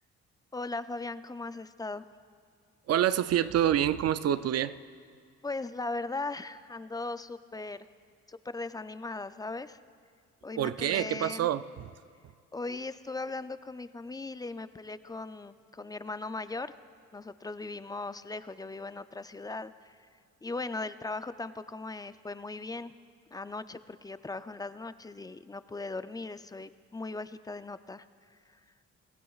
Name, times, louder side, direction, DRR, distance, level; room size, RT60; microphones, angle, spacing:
voice 1, 0.5-2.0 5.4-7.8 8.3-9.8 10.4-11.5 12.5-16.7 17.1-19.9 20.4-22.9 23.3-28.0, left 3 dB, 15° left, 13 dB, 0.4 m, -38 dB
voice 2, 2.9-4.7 10.6-11.9, right 10 dB, 55° right, 14 dB, 0.5 m, -27 dB
23.5 x 15.5 x 2.4 m, 2.1 s
cardioid pair, 90°, 30 cm